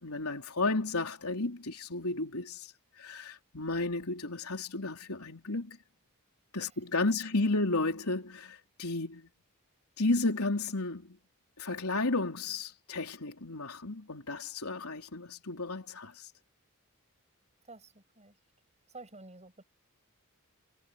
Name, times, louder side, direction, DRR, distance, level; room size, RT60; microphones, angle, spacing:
voice 1, 0.0-2.7 3.0-5.8 6.5-9.3 10.0-11.2 11.6-16.3, left 2 dB, 75° left, 3.9 m, -33 dB
voice 2, 17.6-18.4 18.9-19.6, right 2 dB, 30° right, 7.9 m, -51 dB
head